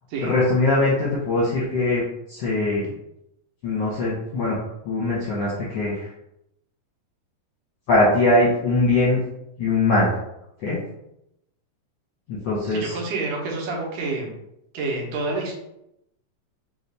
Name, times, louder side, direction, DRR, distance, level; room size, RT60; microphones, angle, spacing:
voice 1, 0.2-2.0 2.3-2.8 3.6-4.6 4.8-6.1 7.9-9.2 9.6-10.1 10.6-10.8 12.3-12.9, left 2 dB, 70° left, -6 dB, 1.4 m, -21 dB
voice 2, 12.7-14.4 14.7-15.5, right 3 dB, 75° right, -2 dB, 2.3 m, -28 dB
5.6 x 2.4 x 3.3 m, 0.81 s
omnidirectional pair, 3.8 m